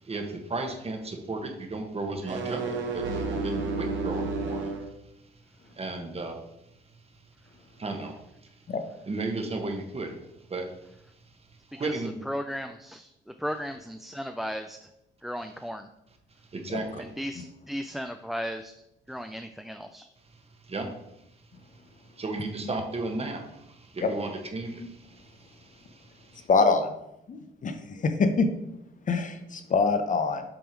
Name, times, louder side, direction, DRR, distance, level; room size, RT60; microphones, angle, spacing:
voice 1, 0.0-4.9 5.7-6.5 7.7-8.6 9.1-10.2 10.5-10.9 11.7-12.2 16.5-17.1 20.3-20.9 21.6-26.5, right 2 dB, 30° right, 4 dB, 1.2 m, -35 dB
sound 1, 2.1-4.9, right 3 dB, 70° right, 1.2 m, -31 dB
voice 2, 12.3-13.1 13.4-14.8 15.2-15.9 17.2-18.7 19.1-20.1, equal, ahead, 7 dB, 0.3 m, -35 dB
voice 3, 26.5-26.9 27.3-27.7 28.0-28.5 29.1-30.4, left 4 dB, 40° left, 7 dB, 0.7 m, -24 dB
7.2 x 3.5 x 4.6 m, 0.84 s
cardioid pair, 90°, 20 cm